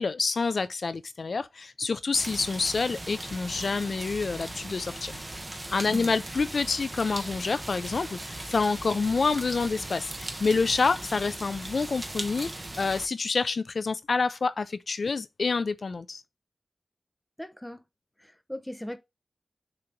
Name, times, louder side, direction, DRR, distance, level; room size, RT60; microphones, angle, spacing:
voice 1, 0.0-5.4 5.7-12.5 12.8-16.2, left 4 dB, 70° left, 0.3 m, -28 dB
sound 1, 2.1-13.1, right 1 dB, 30° right, 1.0 m, -38 dB
voice 2, 17.4-17.8 18.2-19.0, equal, 10° left, 0.8 m, -38 dB
6.8 x 2.9 x 5.0 m
wide cardioid pair, 80°, 0 cm